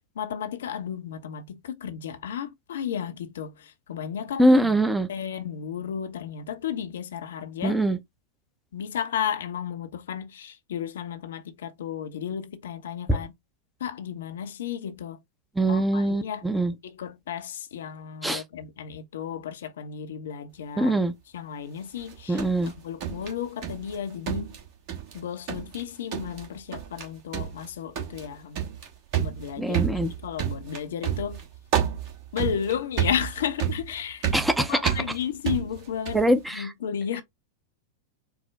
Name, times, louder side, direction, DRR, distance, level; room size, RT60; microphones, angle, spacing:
voice 1, 0.2-4.6 5.1-7.8 8.7-13.3 13.8-15.2 15.7-16.4 16.8-21.0 21.3-22.4 22.8-24.5 25.1-28.6 29.2-29.8 30.2-31.4 32.3-34.3 34.7-36.2 36.5-37.2, left 8 dB, 60° left, 0.5 m, -33 dB
voice 2, 4.4-5.1 7.6-8.0 13.1-13.2 15.6-16.7 18.2-18.4 20.8-21.1 22.3-22.7 29.6-30.1 34.3-34.9 36.1-36.7, right 1 dB, 5° right, 0.6 m, -23 dB
sound 1, 22.0-24.0 24.3-25.2 25.5-25.8 26.1-26.5 26.7-27.1 27.3-36.3, right 9 dB, 45° right, 1.2 m, -30 dB
4.6 x 2.0 x 3.4 m
figure-of-eight pair, 90°, 0 cm